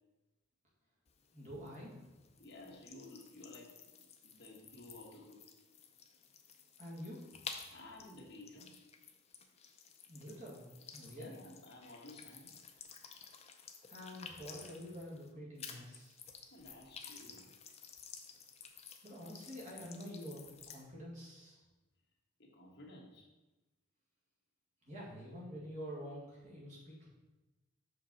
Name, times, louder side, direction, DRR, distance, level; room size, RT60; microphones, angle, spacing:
sound 1, 1.1-15.3 15.6-20.8, left 6 dB, 30° left, 0.5 m, -53 dB
voice 1, 1.3-2.0 6.8-7.2 10.1-11.4 13.9-16.2 19.0-21.6 24.8-27.1, equal, 35° right, -5 dB, 1.9 m, -47 dB
voice 2, 2.4-3.7 4.2-5.4 7.7-8.7 11.1-12.5 16.5-17.5 22.4-23.3, left 2 dB, 55° left, -2 dB, 1.3 m, -54 dB
5.7 x 5.1 x 4.2 m, 1.1 s
head